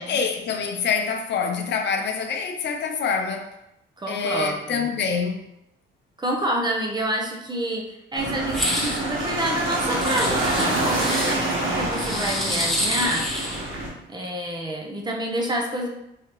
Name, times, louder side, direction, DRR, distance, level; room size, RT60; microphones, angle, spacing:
voice 1, 0.0-3.5 4.1-5.4, left 5 dB, 60° left, 5 dB, 0.6 m, -26 dB
voice 2, 4.0-4.9 6.2-13.3 14.1-15.9, right 1 dB, 20° right, 0 dB, 0.8 m, -28 dB
sound 1, 8.2-13.9, right 1 dB, 75° right, 1.1 m, -26 dB
sound 2, 8.5-9.0 10.0-11.3 11.9-13.7, equal, ahead, 1.0 m, -28 dB
4.8 x 2.7 x 3.0 m, 0.82 s
cardioid pair, 90°, 20 cm